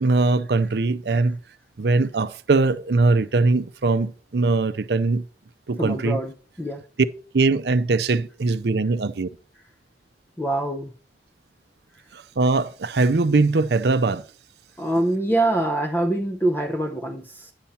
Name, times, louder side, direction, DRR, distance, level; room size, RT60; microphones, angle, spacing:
voice 1, 0.0-1.4 1.8-5.3 5.7-6.2 7.3-9.3 12.1-14.2, right 3 dB, 65° right, 0.5 m, -21 dB
voice 2, 5.8-6.8 10.4-10.9 14.8-17.5, right 1 dB, 10° left, 0.6 m, -24 dB
10.5 x 7.1 x 4.2 m
head